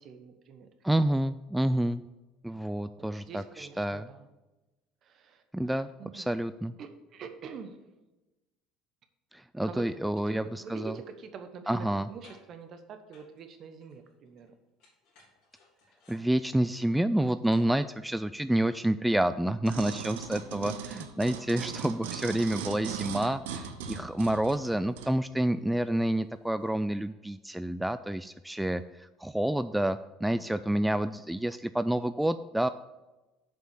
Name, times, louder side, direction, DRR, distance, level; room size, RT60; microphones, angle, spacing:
voice 1, 0.0-0.7 3.0-4.3 5.0-6.3 6.8-7.8 9.6-14.5 20.5-20.8 30.4-31.0, right 6 dB, 50° right, 8 dB, 1.2 m, -46 dB
voice 2, 0.8-2.0 2.4-4.1 5.5-6.7 9.3-10.9 11.7-12.1 16.1-32.7, right 1 dB, 5° right, 12 dB, 0.3 m, -29 dB
sound 1, 10.3-10.5 10.8-12.0 12.2-12.6 13.1-14.5 14.8-17.8 18.1-18.2, left 3 dB, 70° left, 3.5 m, -61 dB
sound 2, 19.6-25.1 25.7-25.8, right 7 dB, 85° right, 0.7 m, -39 dB
7.5 x 5.4 x 7.0 m, 1.1 s
hypercardioid pair, 75°, 0 cm